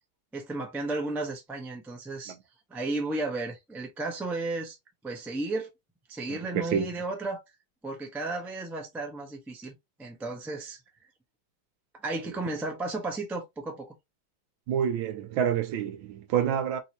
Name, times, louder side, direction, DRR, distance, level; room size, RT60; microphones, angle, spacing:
voice 1, 0.3-2.3 2.7-4.8 5.0-5.7 6.1-7.4 7.8-9.7 10.0-10.8 12.0-13.9, right 2 dB, ahead, 0.4 m, -33 dB
voice 2, 6.3-6.9 12.3-12.4 14.7-16.8, right 8 dB, 75° right, 1.5 m, -28 dB
3.9 x 2.7 x 2.9 m
omnidirectional pair, 2.2 m